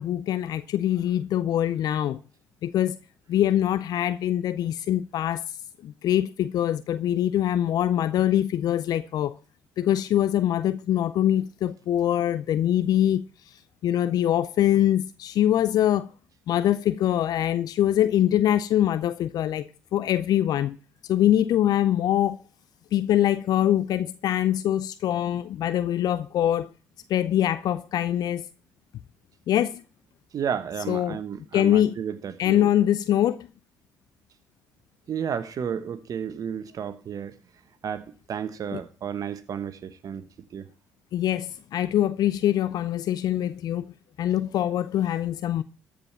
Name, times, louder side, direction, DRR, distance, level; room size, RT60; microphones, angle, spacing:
voice 1, 0.0-2.2 2.6-3.0 3.3-5.4 5.8-9.3 9.8-13.2 13.8-16.1 16.5-20.8 21.1-22.4 22.9-26.7 27.1-28.4 29.5-29.8 30.9-31.2 31.5-32.0 32.4-33.5 38.7-38.8 41.1-43.9 44.2-45.6, left 11 dB, 65° left, 0.5 m, -23 dB
voice 2, 30.3-32.7 35.1-37.3 37.8-40.3 40.5-40.7, right 8 dB, 55° right, 1.2 m, -32 dB
13.5 x 5.1 x 7.2 m
hypercardioid pair, 50°, 7 cm